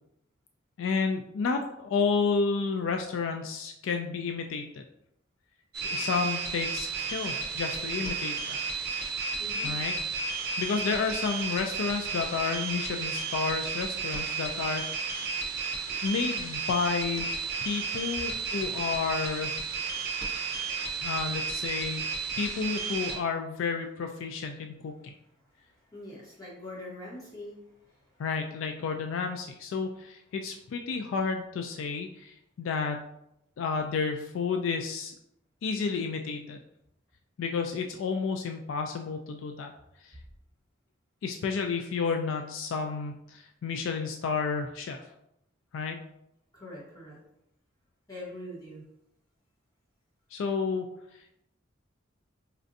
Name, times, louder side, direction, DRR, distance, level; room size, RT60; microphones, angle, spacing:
voice 1, 0.8-4.8 5.8-8.6 9.6-9.9 10.6-14.8 15.9-17.3 17.6-19.6 21.0-22.1 22.4-25.1 28.2-33.1 33.6-35.1 35.6-36.6 37.4-39.7 40.0-40.1 41.2-45.0 45.7-46.0 50.3-50.9, left 5 dB, 70° left, 4 dB, 0.3 m, -31 dB
sound 1, 5.7-23.2, right 5 dB, 55° right, 0.7 m, -33 dB
voice 2, 9.4-9.7 25.9-27.6 27.9-28.1 46.5-47.2 48.1-48.8, left 1 dB, 20° left, -6 dB, 1.2 m, -43 dB
4.2 x 2.5 x 2.6 m, 0.79 s
head